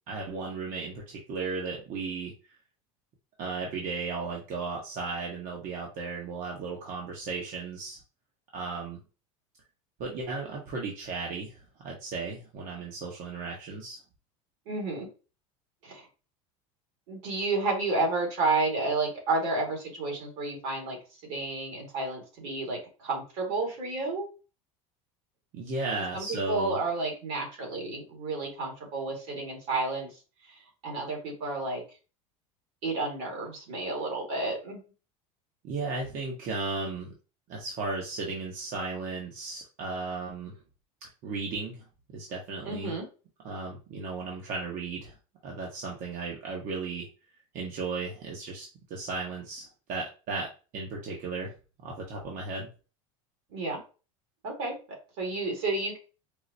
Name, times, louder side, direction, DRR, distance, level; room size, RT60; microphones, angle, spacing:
voice 1, 0.1-2.3 3.4-8.0 8.5-9.0 10.0-11.6 11.8-14.0 25.5-26.8 35.6-37.1 37.5-40.5 41.2-42.9 43.4-45.1 45.4-47.1 47.5-51.5 51.8-52.7, right 4 dB, 50° right, -1 dB, 1.0 m, -35 dB
voice 2, 14.7-15.1 15.8-16.1 17.1-21.0 21.3-24.3 26.1-30.1 30.5-31.8 32.8-34.8 42.6-43.0 53.5-53.8 54.4-56.0, right 3 dB, 70° right, 0 dB, 1.9 m, -31 dB
4.6 x 2.1 x 2.6 m, 0.33 s
supercardioid pair, 100°, 17 cm